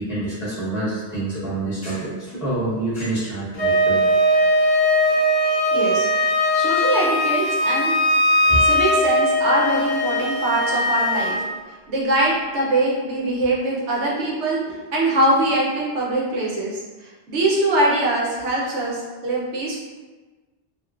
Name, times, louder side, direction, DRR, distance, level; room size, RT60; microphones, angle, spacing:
voice 1, 0.0-4.0 8.4-8.6, right 2 dB, ahead, -9 dB, 0.7 m, -27 dB
Wind instrument woodwind instrument, 3.5-11.4, left 1 dB, 50° left, 0.7 m, -19 dB
voice 2, 5.7-8.0 8.6-11.4 11.7-19.8, right 1 dB, 90° right, -4 dB, 1.0 m, -23 dB
2.9 x 2.4 x 2.3 m, 1.3 s
omnidirectional pair, 1.1 m